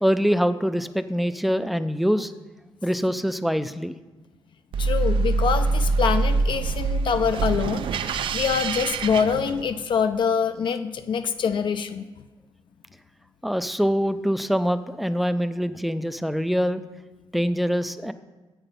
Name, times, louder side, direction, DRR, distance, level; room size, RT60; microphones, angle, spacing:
voice 1, 0.0-2.3 2.8-3.9 13.4-16.8 17.3-18.1, equal, ahead, 12 dB, 0.4 m, -24 dB
sound 1, 4.7-10.0, right 3 dB, 65° right, 0.4 m, -25 dB
voice 2, 4.8-12.0, left 6 dB, 60° left, 9 dB, 0.4 m, -25 dB
8.1 x 5.9 x 5.2 m, 1.2 s
cardioid pair, 100°, 9 cm